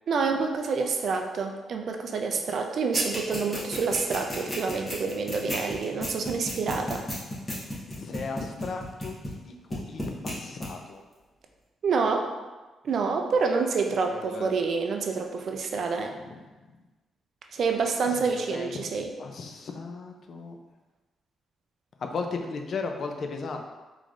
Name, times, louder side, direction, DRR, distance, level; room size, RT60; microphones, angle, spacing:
voice 1, 0.1-7.1 11.8-12.3 12.8-16.1 17.5-19.1, right 4 dB, 60° right, 3 dB, 0.3 m, -27 dB
sound 1, 2.9-9.4 9.7-10.3 10.6-10.7, left 1 dB, 15° left, 1.0 m, -32 dB
voice 2, 7.9-9.1 9.4-11.0 14.1-14.5 16.2-16.7 18.1-18.8 19.2-20.6 22.0-23.7, left 4 dB, 55° left, 4 dB, 0.4 m, -36 dB
3.8 x 3.0 x 2.4 m, 1.2 s
cardioid pair, 120°, 0 cm